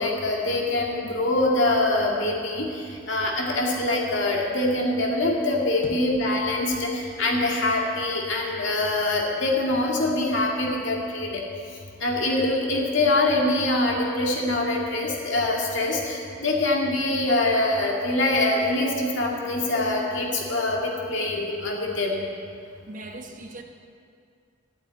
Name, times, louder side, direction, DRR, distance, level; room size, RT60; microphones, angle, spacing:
voice 1, 0.0-11.4 12.0-22.2, left 2 dB, 70° left, 2.3 m, -24 dB
voice 2, 22.9-23.6, right 2 dB, 45° right, 1.2 m, -39 dB
11.5 x 8.5 x 8.7 m
head